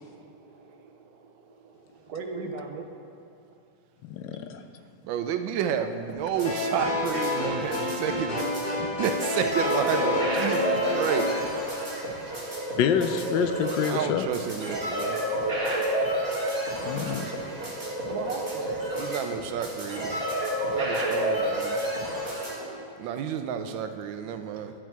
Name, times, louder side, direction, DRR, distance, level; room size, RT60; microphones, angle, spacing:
voice 1, 0.0-3.4 4.3-4.4 5.8-6.1 7.9-8.1 11.7-11.9 12.2-12.5 14.2-14.4 15.8-16.0 16.6-19.2 20.1-20.7 22.3-23.1, right 4 dB, 65° right, 4 dB, 1.1 m, -42 dB
voice 2, 4.0-4.6 12.8-14.3 16.9-17.2, left 8 dB, 80° left, 9 dB, 1.2 m, -27 dB
voice 3, 5.0-11.3 13.8-15.2 16.8-17.6 19.0-20.2 20.7-21.8 23.0-24.7, right 8 dB, 85° right, 8 dB, 1.4 m, -31 dB
sound 1, 6.1-22.5, right 1 dB, 30° right, 2.1 m, -30 dB
sound 2, 6.4-11.4, left 2 dB, 55° left, 2.3 m, -29 dB
11.0 x 7.4 x 4.6 m, 2.7 s
omnidirectional pair, 2.0 m